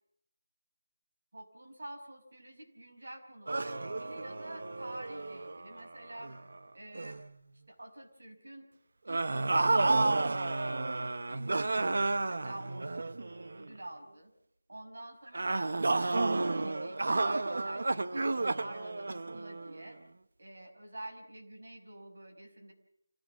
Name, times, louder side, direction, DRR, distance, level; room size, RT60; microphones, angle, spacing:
voice 1, 1.3-6.3 6.7-7.2 7.7-8.7 9.1-10.8 11.3-12.9 13.5-14.3 14.7-15.7 16.0-18.2 18.6-20.0 20.4-22.7, right 1 dB, 80° right, 4 dB, 5.5 m, -48 dB
sound 1, 3.5-6.6 6.9-7.3 9.1-13.7 15.3-19.9, right 2 dB, 60° right, 0.9 m, -31 dB
26.5 x 15.5 x 7.2 m, 0.76 s
figure-of-eight pair, 170°, 0 cm